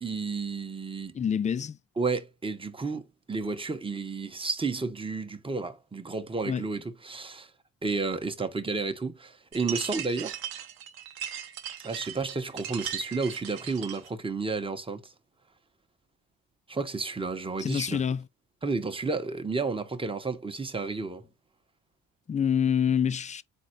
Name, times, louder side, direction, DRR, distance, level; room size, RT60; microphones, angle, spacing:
voice 1, 0.0-1.1 2.0-7.5 7.8-10.4 11.8-15.0 16.7-18.0 18.6-21.2, right 4 dB, 15° right, 0.9 m, -32 dB
voice 2, 1.1-1.8 6.5-6.7 17.6-18.3 22.3-23.4, left 8 dB, 20° left, 0.4 m, -26 dB
sound 1, 9.5-14.1, right 10 dB, 85° right, 0.8 m, -38 dB
4.2 x 2.5 x 4.3 m
cardioid pair, 90°, 36 cm